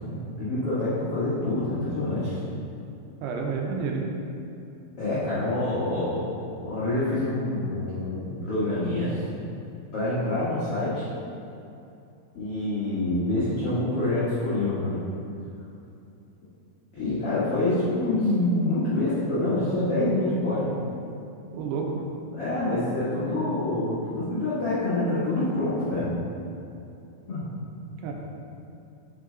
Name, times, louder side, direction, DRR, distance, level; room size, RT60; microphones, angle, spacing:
voice 1, 0.0-2.4 5.0-6.3 6.6-9.2 9.9-11.1 12.3-15.0 16.9-20.7 22.3-26.1 27.3-27.4, left 2 dB, 90° left, -11 dB, 1.2 m, -26 dB
voice 2, 3.2-4.1 21.5-22.0 28.0-28.1, right 5 dB, 80° right, 0 dB, 2.6 m, -29 dB
6.2 x 6.2 x 3.8 m, 2.7 s
omnidirectional pair, 4.9 m